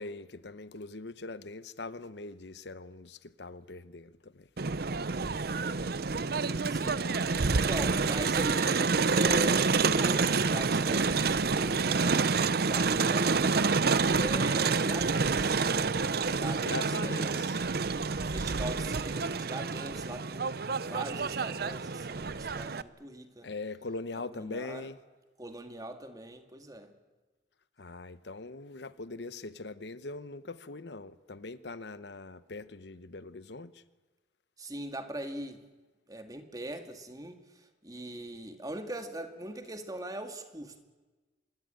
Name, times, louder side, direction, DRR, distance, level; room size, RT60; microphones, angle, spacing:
voice 1, 0.0-4.5 16.6-17.6 23.4-25.0 27.8-33.8, left 3 dB, 70° left, 0.9 m, -42 dB
Crowd, 4.6-22.8, right 4 dB, 60° right, 0.7 m, -28 dB
voice 2, 6.7-13.5 14.0-15.7 16.3-17.5 18.2-23.5 24.3-24.9 25.4-26.9 34.6-35.6 36.1-40.8, right 1 dB, 20° right, 2.1 m, -41 dB
25.0 x 22.0 x 9.0 m
head